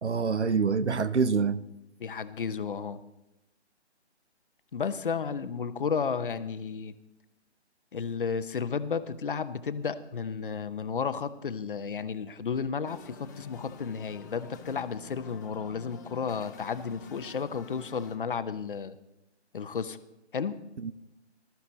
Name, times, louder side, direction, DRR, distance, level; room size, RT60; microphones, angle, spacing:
voice 1, 0.0-1.6 20.8-20.9, right 5 dB, 80° right, 0.9 m, -26 dB
voice 2, 2.0-3.0 4.7-6.9 7.9-18.9 19.5-20.0 20.3-20.6, left 6 dB, 50° left, 0.9 m, -33 dB
sound 1, 12.9-18.2, left 4 dB, 15° left, 0.7 m, -48 dB
20.0 x 13.0 x 4.1 m
figure-of-eight pair, 150°, 34 cm